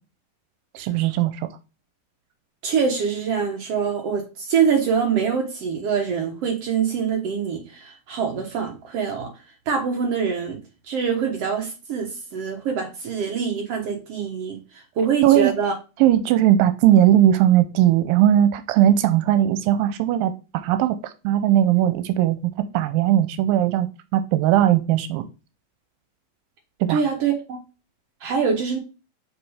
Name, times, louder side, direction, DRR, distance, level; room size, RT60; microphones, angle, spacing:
voice 1, 0.8-1.3 15.2-15.5 16.0-20.3 20.6-21.0 21.2-23.9 24.1-25.2 26.8-27.0, right 12 dB, 90° right, 2.4 m, -18 dB
voice 2, 2.6-9.3 9.7-10.6 10.8-15.7 26.9-27.6 28.2-28.8, right 6 dB, 70° right, 1.5 m, -24 dB
6.2 x 4.2 x 4.8 m
omnidirectional pair, 4.0 m